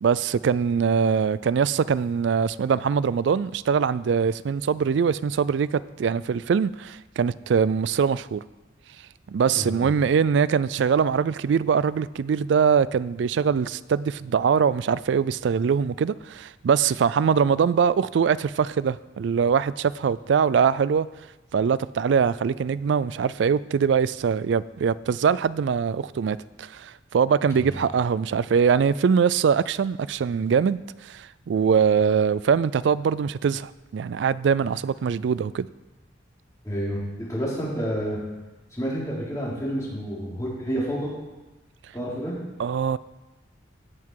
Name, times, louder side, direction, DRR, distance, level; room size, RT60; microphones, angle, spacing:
voice 1, 0.0-8.4 9.3-21.1 21.5-35.7 42.6-43.0, right 6 dB, 65° right, 18 dB, 0.3 m, -22 dB
voice 2, 9.5-9.9 27.5-27.8 36.6-38.2 38.7-41.1 41.9-42.4, equal, 15° left, -6 dB, 3.2 m, -29 dB
17.0 x 6.0 x 4.7 m, 1.1 s
head